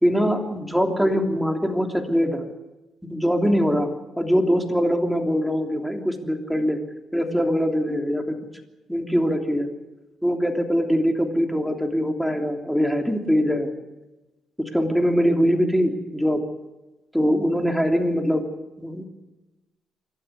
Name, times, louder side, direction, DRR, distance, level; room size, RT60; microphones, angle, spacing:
voice 1, 0.0-2.5 3.0-3.9 4.2-6.8 7.1-8.4 8.9-9.7 10.2-13.7 14.7-16.4 17.1-18.4 18.8-19.0, equal, ahead, 4 dB, 3.2 m, -22 dB
27.5 x 12.0 x 9.8 m, 1.1 s
cardioid pair, 90°, 0 cm